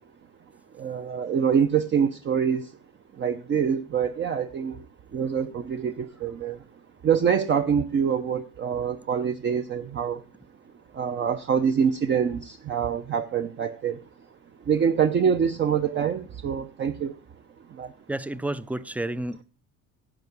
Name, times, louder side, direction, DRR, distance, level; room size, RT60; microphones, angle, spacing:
voice 1, 0.7-2.7 3.1-4.9 5.1-6.6 7.0-10.2 10.9-14.0 14.7-17.2 17.7-17.9, right 7 dB, 40° right, 0.7 m, -25 dB
voice 2, 18.1-19.4, right 1 dB, 5° right, 0.4 m, -30 dB
11.0 x 4.6 x 8.1 m
cardioid pair, 115°, 30 cm